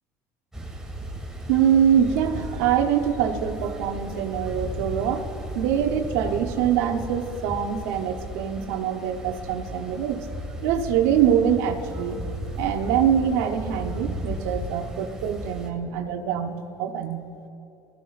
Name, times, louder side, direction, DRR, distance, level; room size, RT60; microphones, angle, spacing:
sound 1, 0.5-15.7, equal, 5° right, 2.1 m, -35 dB
voice 1, 1.5-5.2 5.5-10.3 10.6-12.2 12.6-17.3, right 9 dB, 80° right, 5 dB, 1.0 m, -24 dB
20.0 x 14.0 x 2.6 m, 2.9 s
supercardioid pair, 95°, 9 cm